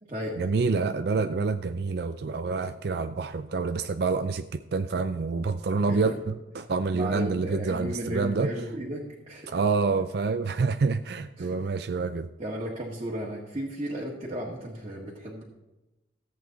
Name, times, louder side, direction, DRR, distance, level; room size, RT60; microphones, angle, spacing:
voice 1, 0.4-8.5 9.5-12.3, right 4 dB, 60° right, 10 dB, 0.4 m, -27 dB
voice 2, 6.9-9.5 11.4-11.6 12.4-15.4, equal, 30° right, -5 dB, 1.7 m, -34 dB
14.0 x 8.3 x 4.0 m, 1.0 s
head